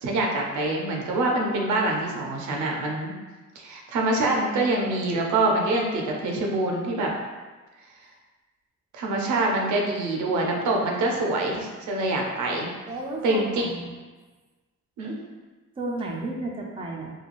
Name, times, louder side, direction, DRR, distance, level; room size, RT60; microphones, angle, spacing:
voice 1, 0.0-3.1 3.6-7.1 8.9-12.7 13.2-13.7 15.0-15.2, right 2 dB, 75° right, 0 dB, 0.6 m, -25 dB
voice 2, 12.9-13.9 15.8-17.1, right 2 dB, 20° right, -1 dB, 0.4 m, -33 dB
3.1 x 2.3 x 2.5 m, 1.3 s
cardioid pair, 90°, 30 cm